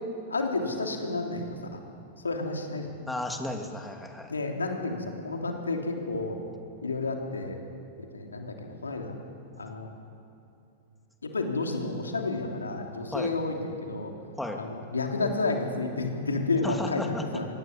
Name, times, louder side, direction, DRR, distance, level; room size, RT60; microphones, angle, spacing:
voice 1, 0.3-1.8 2.2-2.9 4.3-6.4 6.8-7.6 8.0-9.1 9.6-9.9 11.2-14.1 14.6-17.5, left 3 dB, 85° left, 2 dB, 3.2 m, -31 dB
voice 2, 3.1-4.3 13.1-13.3 14.4-14.6 16.6-17.3, left 1 dB, 5° left, 3 dB, 2.9 m, -34 dB
25.0 x 19.0 x 7.5 m, 2.8 s
hypercardioid pair, 100°, 0 cm